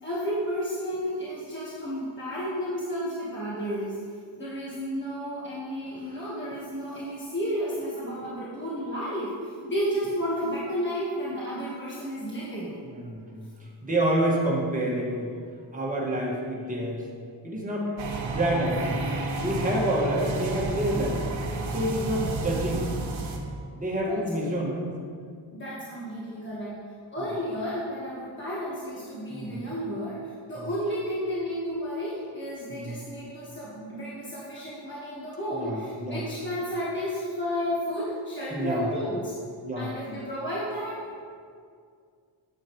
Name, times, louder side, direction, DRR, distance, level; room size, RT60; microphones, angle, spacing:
voice 1, 0.0-12.8 24.0-24.2 24.6-24.7 25.5-26.8 27.1-39.3 39.8-41.2, equal, 25° left, -7 dB, 1.4 m, -32 dB
voice 2, 12.8-13.4 13.8-15.3 15.7-17.0 17.4-17.9 18.3-19.0 19.4-21.2 21.7-22.8 23.8-24.9 29.3-29.6 32.7-33.0 35.6-36.2 38.5-38.9 39.6-39.9, right 1 dB, 15° right, -4 dB, 1.7 m, -28 dB
sound 1, 18.0-23.4, right 3 dB, 80° right, 1.1 m, -31 dB
8.6 x 8.3 x 3.1 m, 2.2 s
wide cardioid pair, 135°, 46 cm